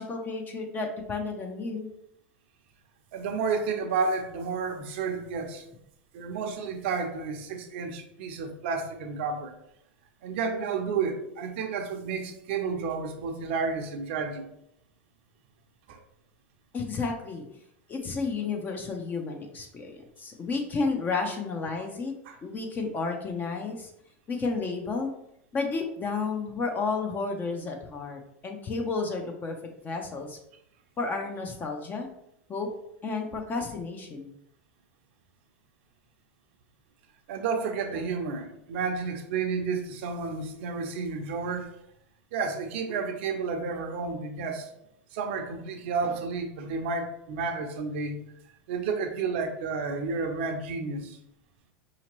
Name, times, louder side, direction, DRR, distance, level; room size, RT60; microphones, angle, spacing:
voice 1, 0.0-1.9 16.7-17.5 17.9-22.1 22.4-23.9 24.3-25.1 25.5-29.6 29.8-30.4 31.0-32.1 32.5-32.7 33.0-34.3, left 4 dB, 30° left, 2 dB, 0.6 m, -32 dB
voice 2, 3.1-5.6 6.1-9.5 10.2-14.5 15.9-16.0 22.3-22.4 37.3-41.7 42.3-44.7 45.1-48.2 48.7-51.2, right 5 dB, 70° right, 5 dB, 0.6 m, -31 dB
4.9 x 2.9 x 3.0 m, 0.77 s
hypercardioid pair, 110°, 6 cm